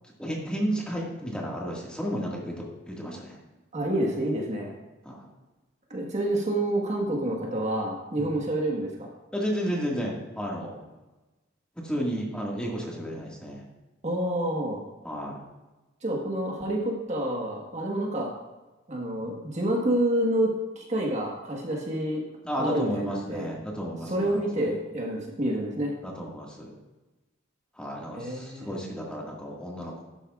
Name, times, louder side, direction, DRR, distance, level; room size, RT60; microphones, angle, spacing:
voice 1, 0.2-3.4 5.0-5.3 8.2-8.4 9.3-10.8 11.8-13.6 15.0-15.4 22.4-24.8 26.0-26.8 27.8-30.0, equal, 5° left, -3 dB, 1.8 m, -32 dB
voice 2, 3.7-4.7 5.9-9.1 14.0-14.8 16.0-18.3 18.9-20.5 20.7-22.2 22.6-23.5 24.1-25.9 28.1-28.7, right 1 dB, 35° right, -1 dB, 1.4 m, -28 dB
12.0 x 9.8 x 2.4 m, 1.1 s
head